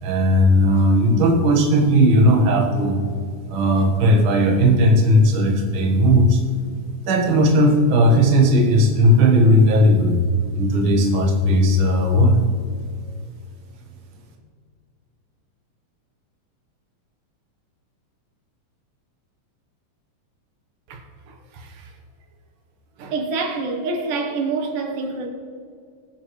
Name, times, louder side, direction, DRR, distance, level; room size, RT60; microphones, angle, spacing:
voice 1, 0.0-3.0 3.5-6.4 7.1-10.2 10.6-12.4, equal, 50° right, 2.0 m, -16 dB
voice 2, 21.3-21.9 23.0-25.3, right 3 dB, 85° right, 2.9 m, -27 dB
22.0 x 7.6 x 3.2 m
omnidirectional pair, 3.6 m